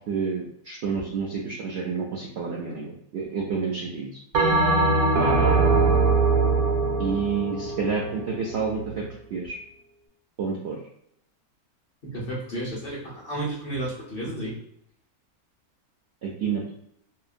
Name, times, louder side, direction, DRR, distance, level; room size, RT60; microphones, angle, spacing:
voice 1, 0.1-4.2 5.2-6.0 7.0-9.1 9.3-9.6 10.4-10.8 16.2-16.7, right 5 dB, 70° right, -2 dB, 0.6 m, -29 dB
Bell, 4.3-8.9, right 3 dB, 90° right, 1.2 m, -22 dB
voice 2, 12.1-14.6, right 1 dB, 50° left, -5 dB, 0.8 m, -32 dB
2.9 x 2.4 x 2.5 m, 0.72 s
omnidirectional pair, 1.6 m